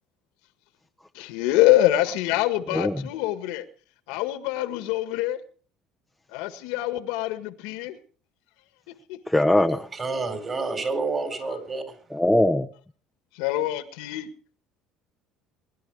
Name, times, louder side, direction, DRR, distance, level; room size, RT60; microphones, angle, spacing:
voice 1, 1.1-3.6 4.1-5.4 6.3-8.0 8.9-9.4 11.5-11.6 13.3-14.3, left 14 dB, 85° left, 1.7 m, -25 dB
voice 2, 9.3-9.9 12.1-12.7, left 1 dB, 5° left, 0.8 m, -21 dB
voice 3, 9.9-12.0, right 3 dB, 30° right, 4.4 m, -29 dB
23.0 x 11.5 x 4.9 m
cardioid pair, 110°, 0 cm